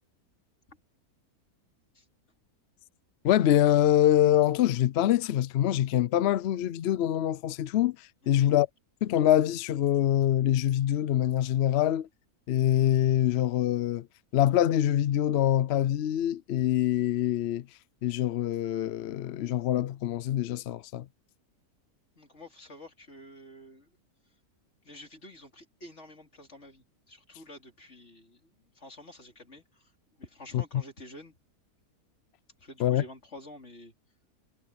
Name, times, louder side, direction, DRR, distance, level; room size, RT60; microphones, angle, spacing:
voice 1, 3.2-8.7 9.0-12.1 12.5-14.1 14.3-17.6 18.0-21.1 30.5-30.6 32.8-33.0, left 12 dB, 70° left, 0.6 m, -25 dB
voice 2, 8.2-8.5 22.2-23.9 24.8-29.9 30.2-31.4 32.6-33.9, left 1 dB, 45° left, 4.2 m, -49 dB
omnidirectional pair, 1.6 m